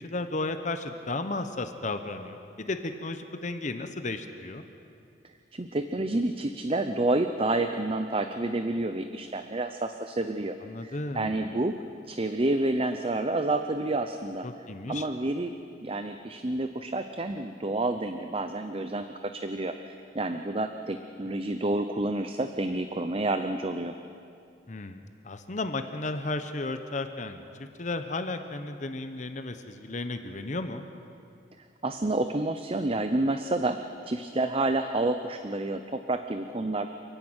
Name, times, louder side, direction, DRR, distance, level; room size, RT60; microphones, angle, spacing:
voice 1, 0.0-4.6 10.6-11.4 14.4-15.1 24.7-27.4 27.8-30.8, left 2 dB, 40° left, 8 dB, 0.9 m, -34 dB
voice 2, 5.5-10.6 10.8-14.5 14.9-15.5 15.8-23.9 31.8-33.8 34.1-36.9, right 2 dB, 30° right, 8 dB, 0.7 m, -29 dB
29.5 x 10.5 x 8.9 m, 2.5 s
head